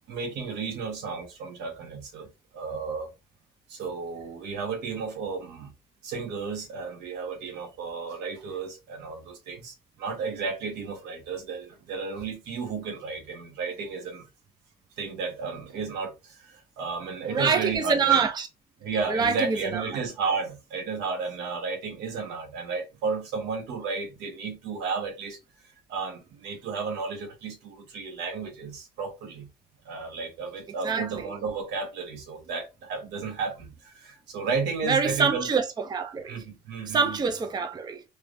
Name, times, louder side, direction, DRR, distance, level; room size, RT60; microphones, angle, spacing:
voice 1, 0.1-3.1 3.7-5.7 6.0-14.3 15.0-18.2 18.8-25.4 25.9-29.5 29.8-35.5 36.3-37.2, right 4 dB, 80° right, 1.2 m, -33 dB
voice 2, 17.2-18.5 19.0-20.0 30.8-31.3 34.8-36.4 36.9-38.0, right 5 dB, 25° right, 0.5 m, -26 dB
3.1 x 3.1 x 2.5 m
cardioid pair, 110°, 17 cm